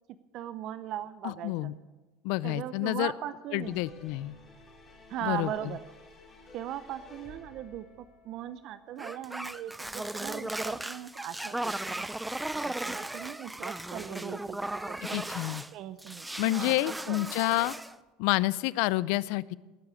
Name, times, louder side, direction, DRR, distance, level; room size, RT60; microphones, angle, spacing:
voice 1, 0.3-1.7 2.4-3.8 5.1-5.8 6.5-12.1 12.6-15.2 15.7-17.2, right 11 dB, 55° right, 13 dB, 0.7 m, -39 dB
voice 2, 1.2-1.7 2.2-3.1 3.5-4.3 5.2-5.5 15.1-15.6 16.4-17.7 18.2-19.5, left 19 dB, 70° left, 20 dB, 0.5 m, -29 dB
sound 1, 3.6-9.1, left 3 dB, 25° left, 4.4 m, -53 dB
sound 2, 9.0-15.7 16.0-18.0, right 1 dB, 5° right, 0.6 m, -36 dB
18.5 x 8.0 x 8.5 m, 1.2 s
supercardioid pair, 105°, 0 cm